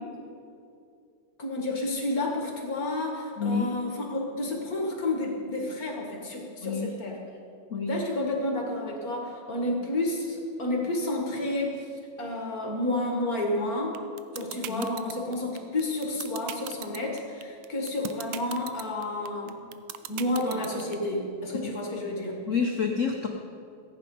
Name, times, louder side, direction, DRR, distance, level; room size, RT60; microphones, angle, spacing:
voice 1, 1.4-7.2 7.9-11.9 12.2-14.0 14.3-19.6 20.1-22.4, left 1 dB, 45° left, 0 dB, 1.8 m, -30 dB
sound 1, 13.9-20.9, right 13 dB, 75° right, 1.3 m, -37 dB
voice 2, 22.5-23.3, left 5 dB, 85° left, 2 dB, 0.6 m, -28 dB
14.5 x 8.8 x 5.3 m, 2.5 s
omnidirectional pair, 2.4 m